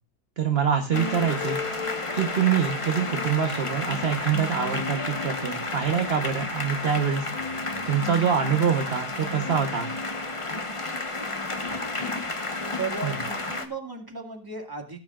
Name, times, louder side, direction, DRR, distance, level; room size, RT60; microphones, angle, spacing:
voice 1, 0.4-1.6 2.1-7.3 7.8-9.9 13.0-13.1, right 7 dB, 45° right, 4 dB, 1.2 m, -25 dB
sound 1, 0.9-13.6, left 3 dB, 25° left, 1.0 m, -31 dB
voice 2, 11.7-12.2 12.8-15.0, right 4 dB, 15° right, 2 dB, 2.0 m, -36 dB
18.0 x 9.5 x 2.4 m, 0.33 s
omnidirectional pair, 1.7 m